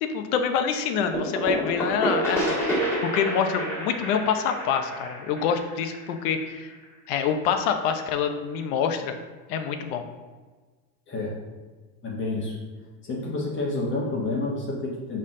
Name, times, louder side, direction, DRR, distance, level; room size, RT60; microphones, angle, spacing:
voice 1, 0.0-6.7 7.1-9.1 9.5-10.0, left 7 dB, 60° left, 6 dB, 0.9 m, -26 dB
sound 1, 1.1-6.7, right 1 dB, 5° left, 1.6 m, -29 dB
voice 2, 12.0-12.6 13.0-15.2, left 2 dB, 25° left, -3 dB, 1.1 m, -29 dB
7.1 x 4.5 x 3.7 m, 1.3 s
supercardioid pair, 145°, 49 cm